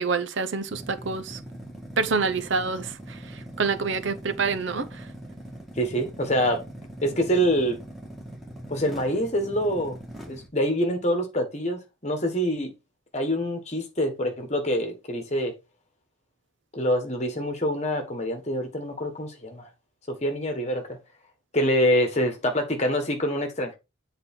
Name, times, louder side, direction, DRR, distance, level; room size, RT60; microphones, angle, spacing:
voice 1, 0.0-1.4 2.0-2.9 3.6-4.9, right 4 dB, 70° right, 0.7 m, -26 dB
sound 1, 0.7-10.5, right 1 dB, ahead, 2.4 m, -42 dB
voice 2, 5.8-6.6 7.0-7.8 8.7-10.0 10.3-12.7 13.1-15.5 16.7-19.7 20.1-21.0 21.5-23.8, equal, 35° left, 1.4 m, -25 dB
8.0 x 4.0 x 4.3 m
head